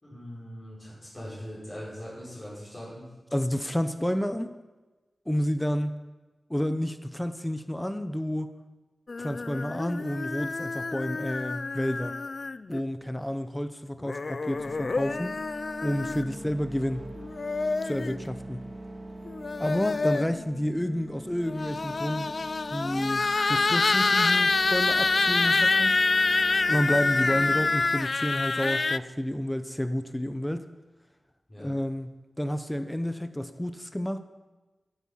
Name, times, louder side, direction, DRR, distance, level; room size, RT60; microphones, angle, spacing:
voice 1, 0.0-3.1 16.4-16.5 31.5-31.7, equal, 30° left, -8 dB, 5.1 m, -41 dB
voice 2, 3.3-4.5 5.3-5.9 6.5-8.5 9.2-12.1 12.7-15.4 15.8-17.1 17.8-18.6 19.6-22.3 22.7-26.0 26.7-30.6 31.6-32.1 32.4-34.2, equal, 10° left, 10 dB, 0.7 m, -30 dB
sound 1, 9.1-12.8 14.0-16.3 17.2-18.2 19.3-20.4 21.4-29.0, left 3 dB, 55° left, 0.3 m, -27 dB
sound 2, 14.5-27.7, right 1 dB, 40° right, 2.8 m, -43 dB
14.5 x 8.3 x 5.7 m, 1.2 s
wide cardioid pair, 65°, 0 cm